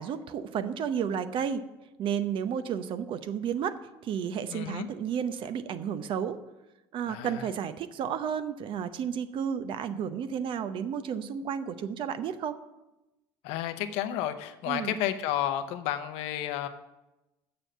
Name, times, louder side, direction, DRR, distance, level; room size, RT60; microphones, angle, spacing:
voice 1, 0.0-1.7 2.0-6.4 6.9-12.6 14.7-15.0, right 8 dB, 55° right, 11 dB, 0.8 m, -32 dB
voice 2, 4.5-4.9 7.1-7.5 13.4-16.7, left 11 dB, 75° left, 9 dB, 0.8 m, -31 dB
7.4 x 6.8 x 7.9 m, 0.99 s
supercardioid pair, 85°, 10 cm